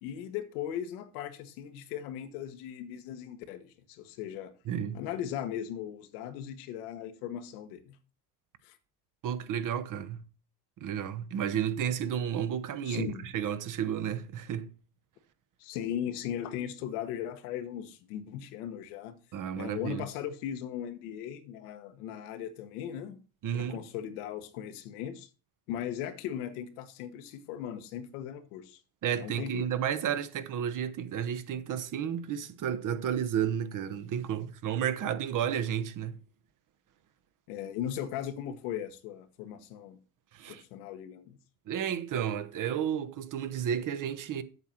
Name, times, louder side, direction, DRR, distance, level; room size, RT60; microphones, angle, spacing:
voice 1, 0.0-4.5 4.9-8.0 8.6-8.8 12.8-13.3 15.6-19.1 19.6-23.2 23.5-25.3 25.7-28.8 29.2-29.6 37.5-40.0 40.5-41.4, left 10 dB, 85° left, 1.4 m, -38 dB
voice 2, 4.7-5.0 9.2-10.2 10.8-14.7 19.3-20.0 23.4-23.8 29.0-36.2 40.3-40.6 41.7-44.4, right 9 dB, 45° right, 1.0 m, -32 dB
8.1 x 7.4 x 4.4 m
supercardioid pair, 100°, 44 cm